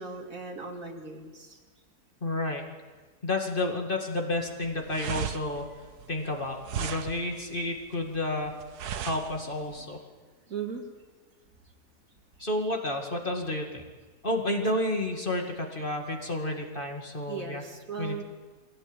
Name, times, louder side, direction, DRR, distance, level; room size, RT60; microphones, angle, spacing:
voice 1, 0.0-1.6 10.5-10.9 17.3-18.2, right 5 dB, 55° right, 3 dB, 2.6 m, -38 dB
voice 2, 2.2-2.7 3.2-5.6 6.1-8.6 9.0-10.0 12.4-13.9 14.2-17.6 18.0-18.2, left 2 dB, 30° left, 2 dB, 2.2 m, -31 dB
sound 1, 4.3-9.8, right 9 dB, 70° right, 1.4 m, -37 dB
23.0 x 16.5 x 9.0 m, 1.4 s
omnidirectional pair, 1.8 m